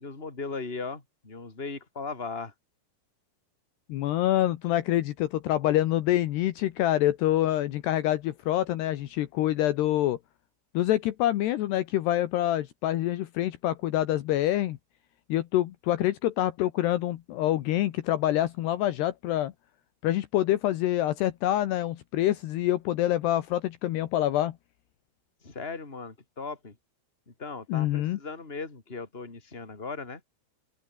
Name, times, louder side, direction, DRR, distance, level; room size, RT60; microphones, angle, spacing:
voice 1, 0.0-2.5 25.4-26.8 27.3-30.2, left 4 dB, 15° left, 3.6 m, -38 dB
voice 2, 3.9-10.2 10.7-14.8 15.3-19.5 20.0-24.5 27.7-28.2, left 14 dB, 75° left, 3.0 m, -26 dB
open air
omnidirectional pair, 5.3 m